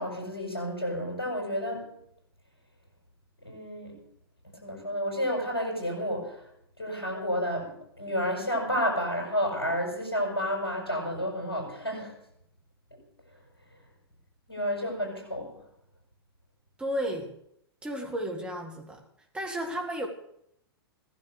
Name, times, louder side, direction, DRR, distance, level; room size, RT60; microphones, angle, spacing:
voice 1, 0.0-1.9 3.4-4.0 4.6-6.4 6.8-7.7 8.0-12.1 14.5-15.5, equal, 80° left, -1 dB, 7.0 m, -30 dB
voice 2, 16.8-17.3 17.8-19.0 19.3-20.1, equal, 10° right, 1 dB, 2.2 m, -33 dB
17.0 x 11.0 x 6.9 m, 0.73 s
figure-of-eight pair, 105°, 13 cm